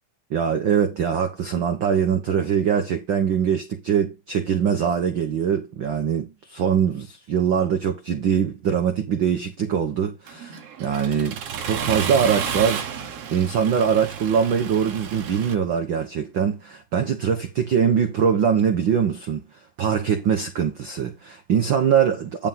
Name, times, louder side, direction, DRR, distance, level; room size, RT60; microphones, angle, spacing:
voice 1, 0.3-19.5 19.8-22.5, right 7 dB, 75° right, 1.1 m, -23 dB
Accelerating revving vroom, 10.3-15.5, right 7 dB, 55° right, 2.0 m, -31 dB
9.3 x 5.6 x 3.9 m
omnidirectional pair, 3.7 m